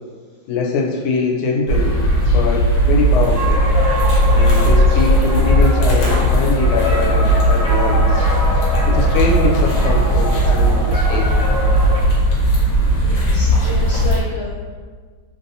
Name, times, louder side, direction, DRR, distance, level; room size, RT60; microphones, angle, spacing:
voice 1, 0.5-1.9 2.2-3.6 4.3-8.2 8.8-11.3, left 4 dB, 90° left, -1 dB, 1.5 m, -22 dB
sound 1, 1.7-14.2, equal, 75° left, 1.5 m, -16 dB
sound 2, 3.3-12.0, left 1 dB, 30° left, 0.7 m, -25 dB
voice 2, 12.8-14.7, left 3 dB, 65° right, -12 dB, 0.7 m, -31 dB
3.4 x 2.6 x 2.7 m, 1.5 s
omnidirectional pair, 2.3 m